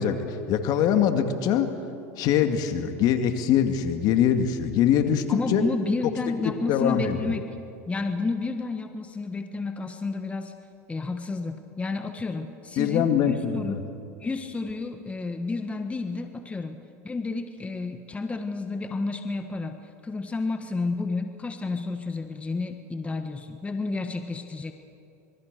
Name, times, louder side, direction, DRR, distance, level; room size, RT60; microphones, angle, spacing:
voice 1, 0.0-1.7 2.2-5.6 6.7-7.2 12.8-13.8, left 9 dB, 55° left, 7 dB, 2.3 m, -23 dB
voice 2, 5.3-7.5 7.9-10.5 10.9-13.8 14.2-19.8 20.0-24.7, left 3 dB, 15° left, 7 dB, 1.4 m, -31 dB
26.0 x 22.5 x 6.8 m, 2.6 s
hypercardioid pair, 100°, 8 cm